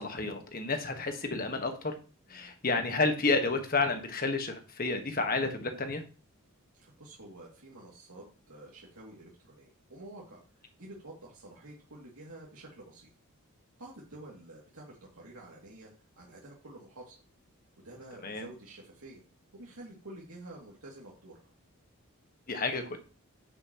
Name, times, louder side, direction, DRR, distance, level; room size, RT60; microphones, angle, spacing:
voice 1, 0.0-1.9 2.3-6.0 18.2-18.5 22.5-23.0, left 3 dB, 40° left, 6 dB, 1.5 m, -30 dB
voice 2, 6.7-13.1 13.8-17.2 17.8-19.2 19.5-21.5, right 2 dB, 85° right, -3 dB, 2.5 m, -49 dB
9.6 x 7.6 x 3.0 m, 0.36 s
head